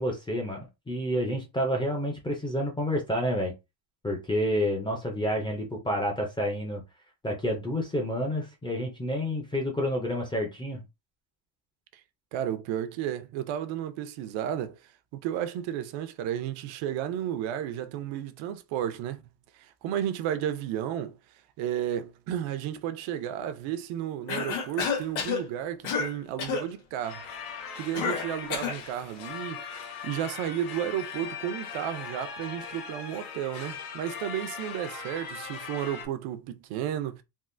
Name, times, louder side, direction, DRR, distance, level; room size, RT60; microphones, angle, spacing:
voice 1, 0.0-3.5 4.0-6.8 7.2-10.8, equal, 10° left, 0.3 m, -29 dB
voice 2, 12.3-14.8 15.1-19.2 19.5-21.2 21.6-27.2 27.8-29.6 30.0-37.2, right 10 dB, 75° right, 0.6 m, -33 dB
Cough, 24.3-25.4 25.8-26.1 26.4-26.7 27.9-28.8, left 6 dB, 80° left, 1.3 m, -29 dB
sound 1, 27.0-36.1, left 6 dB, 60° left, 0.9 m, -40 dB
3.6 x 2.4 x 2.5 m
cardioid pair, 180°, 46 cm